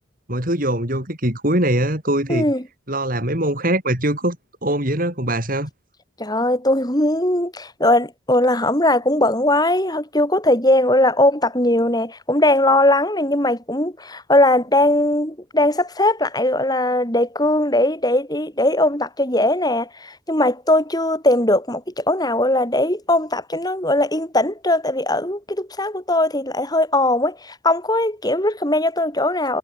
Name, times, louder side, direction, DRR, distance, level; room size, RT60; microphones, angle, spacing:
voice 1, 0.3-2.5 2.9-4.4 4.6-5.7, right 1 dB, 45° right, 7.9 m, -22 dB
voice 2, 2.3-2.6 6.2-29.6, left 1 dB, 20° left, 7.5 m, -19 dB
head